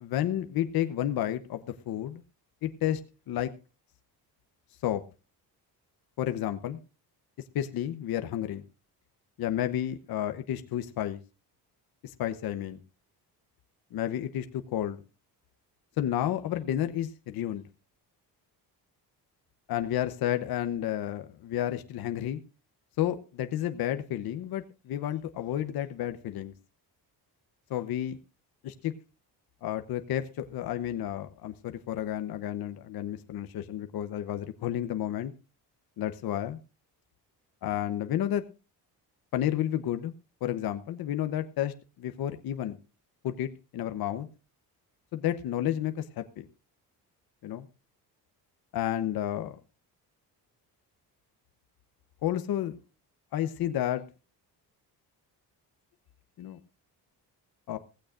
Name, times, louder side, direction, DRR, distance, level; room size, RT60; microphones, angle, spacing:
voice 1, 0.0-2.2 2.6-3.0 3.3-3.5 4.8-5.0 6.2-6.8 7.5-8.6 9.4-11.2 12.0-12.8 13.9-15.0 16.0-17.6 19.7-22.4 23.0-26.5 27.7-28.2 28.6-28.9 29.6-35.3 36.0-36.6 37.6-38.4 39.3-40.1 40.4-42.8 43.2-44.3 45.1-46.5 47.4-47.7 48.7-49.6 52.2-52.8 53.3-54.0 56.4-56.6 57.7-57.8, left 11 dB, 65° left, 8 dB, 1.0 m, -31 dB
17.0 x 15.5 x 2.5 m, 0.32 s
cardioid pair, 155°, 39 cm